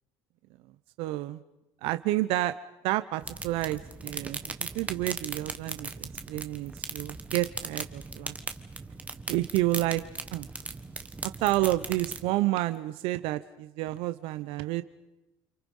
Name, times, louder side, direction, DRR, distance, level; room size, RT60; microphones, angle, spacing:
voice 1, 1.0-1.4 1.8-2.6 2.8-8.3 9.3-10.0 10.3-10.5 11.2-14.8, right 16 dB, 70° right, 12 dB, 0.9 m, -30 dB
sound 1, 3.2-12.3, right 3 dB, 15° right, 1.4 m, -39 dB
30.0 x 27.0 x 5.6 m, 0.98 s
cardioid pair, 145°, 10 cm